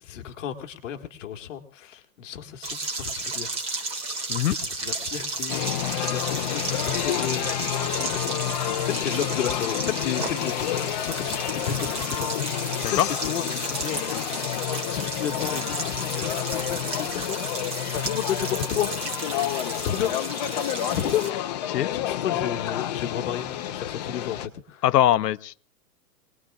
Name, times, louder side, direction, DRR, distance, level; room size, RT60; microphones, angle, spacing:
voice 1, 0.0-3.8 4.4-5.6 6.0-8.4 8.8-14.0 14.7-17.6 18.0-18.9 19.7-20.6 20.9-21.2 21.9-24.8, left 10 dB, 50° left, 2.0 m, -33 dB
sound 1, 2.6-21.3, right 3 dB, 10° right, 2.2 m, -33 dB
sound 2, 5.5-24.5, left 12 dB, 25° left, 0.7 m, -29 dB
voice 2, 24.8-25.6, left 12 dB, 80° left, 0.7 m, -22 dB
24.5 x 20.0 x 2.5 m
hypercardioid pair, 155°, 48 cm